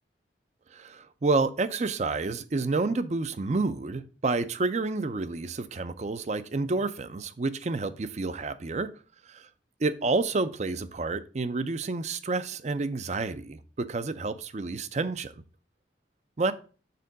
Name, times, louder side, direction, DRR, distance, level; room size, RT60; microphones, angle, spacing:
voice 1, 0.7-8.9 9.3-9.5 9.8-15.3 16.4-16.5, right 3 dB, 40° right, 0.5 m, -29 dB
6.8 x 3.7 x 5.2 m
head